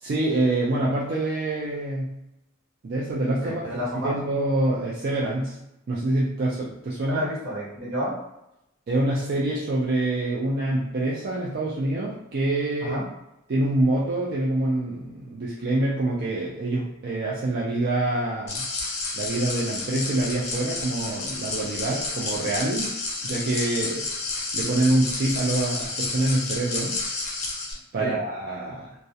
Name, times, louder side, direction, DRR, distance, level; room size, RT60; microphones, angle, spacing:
voice 1, 0.0-2.2 2.8-3.6 4.0-5.6 5.9-7.2 8.9-13.0 13.5-18.6 19.1-22.9 23.2-24.1 24.5-27.0 27.9-28.9, right 2 dB, 50° right, -6 dB, 0.4 m, -26 dB
voice 2, 3.4-4.1 7.1-8.2 12.8-13.0 28.0-28.1, equal, 80° right, -6 dB, 1.0 m, -30 dB
sound 1, 18.5-27.7, left 3 dB, 35° left, 0.5 m, -31 dB
2.3 x 2.1 x 2.7 m, 0.86 s
head